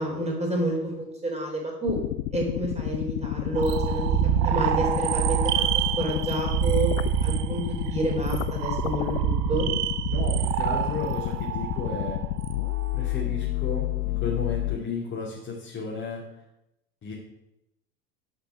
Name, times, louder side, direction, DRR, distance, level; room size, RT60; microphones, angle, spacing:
voice 1, 0.0-2.0 2.3-4.1 4.4-5.7 6.0-6.9 7.2-9.7, right 1 dB, 15° right, 0 dB, 4.2 m, -29 dB
sound 1, 1.9-14.8, left 16 dB, 55° left, 0.6 m, -30 dB
sound 2, 3.5-13.2, right 12 dB, 35° right, 0.6 m, -27 dB
voice 2, 10.1-12.2 12.9-16.2 17.0-17.1, left 4 dB, 25° left, -5 dB, 2.8 m, -33 dB
11.5 x 5.9 x 5.9 m, 0.89 s
figure-of-eight pair, 85°, 49 cm